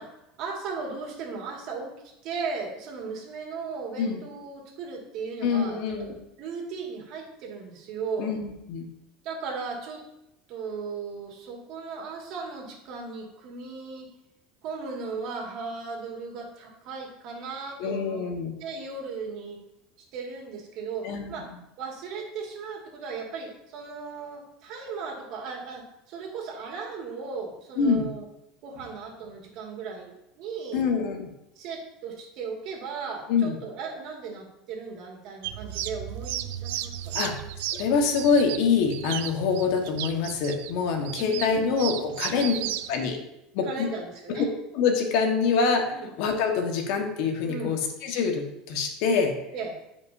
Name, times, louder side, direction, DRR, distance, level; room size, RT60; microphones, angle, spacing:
voice 1, 0.0-1.9 2.2-6.1 6.4-8.3 9.2-10.0 10.5-14.1 14.6-18.2 18.6-19.6 20.1-21.5 21.8-28.2 28.6-30.9 31.6-37.3 41.2-41.7 42.3-42.7 43.6-44.4 45.9-46.1 47.5-47.8 49.5-49.8, right 4 dB, 55° right, 0 dB, 2.3 m, -36 dB
voice 2, 5.4-6.1 8.2-8.9 17.8-18.5 21.0-21.3 27.8-28.1 30.7-31.3 33.3-33.6 37.1-37.3 37.7-42.5 42.9-43.2 43.5-43.9 44.3-44.5 44.7-49.3, left 5 dB, 60° left, 3 dB, 1.6 m, -25 dB
sound 1, 35.4-42.9, right 12 dB, 85° right, 0.5 m, -35 dB
15.5 x 5.3 x 2.8 m, 0.87 s
supercardioid pair, 145°, 0 cm